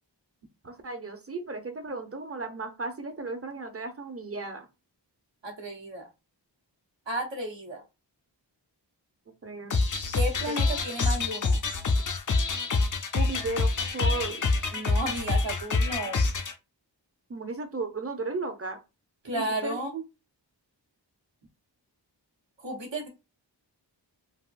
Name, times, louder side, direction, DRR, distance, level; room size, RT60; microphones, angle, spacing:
voice 1, 0.6-4.7 9.4-9.8 10.5-10.6 13.1-14.6 17.3-18.8 19.3-19.8, right 3 dB, 30° right, 0.6 m, -35 dB
voice 2, 5.4-6.0 7.1-7.8 10.1-11.6 14.7-16.2 19.2-20.0 22.6-23.1, right 1 dB, 75° right, 1.1 m, -33 dB
sound 1, 9.7-16.5, left 3 dB, 45° left, 0.5 m, -26 dB
3.5 x 2.4 x 2.5 m
wide cardioid pair, 45°, 45 cm